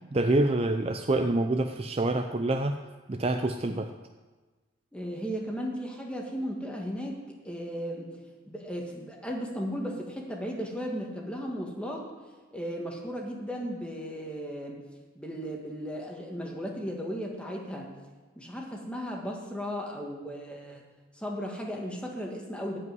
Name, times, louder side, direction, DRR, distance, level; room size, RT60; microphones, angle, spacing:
voice 1, 0.1-2.8 3.1-3.9, right 2 dB, 30° right, 6 dB, 0.4 m, -26 dB
voice 2, 4.9-8.1 8.5-12.1 12.5-14.8 15.1-17.9 18.3-20.8 21.1-22.8, equal, 5° left, -1 dB, 1.7 m, -35 dB
14.5 x 5.4 x 9.5 m, 1.3 s
head